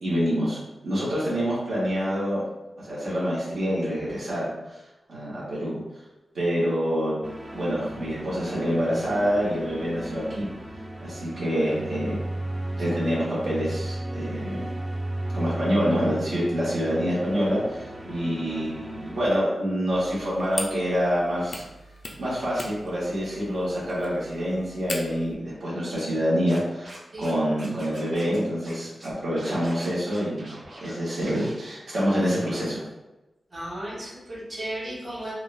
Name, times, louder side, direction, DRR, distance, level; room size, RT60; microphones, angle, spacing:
voice 1, 0.0-2.4 2.8-4.5 5.1-5.8 6.3-7.2 7.5-10.5 11.0-12.2 12.8-14.7 15.3-21.6 22.2-30.5 30.8-32.8, equal, 75° right, -9 dB, 1.2 m, -26 dB
sound 1, 7.2-19.3, right 1 dB, 15° right, 0.4 m, -35 dB
sound 2, 19.9-25.3, left 2 dB, 50° left, 0.4 m, -39 dB
Scratching (performance technique), 26.5-27.3 27.6-28.4 28.6-28.7 29.0-30.9 31.2-31.8, right 1 dB, 50° right, 0.7 m, -44 dB
voice 2, 27.1-27.5 33.5-35.3, right 1 dB, 35° right, -8 dB, 1.2 m, -35 dB
3.6 x 2.2 x 2.5 m, 1.0 s
wide cardioid pair, 135°, 0 cm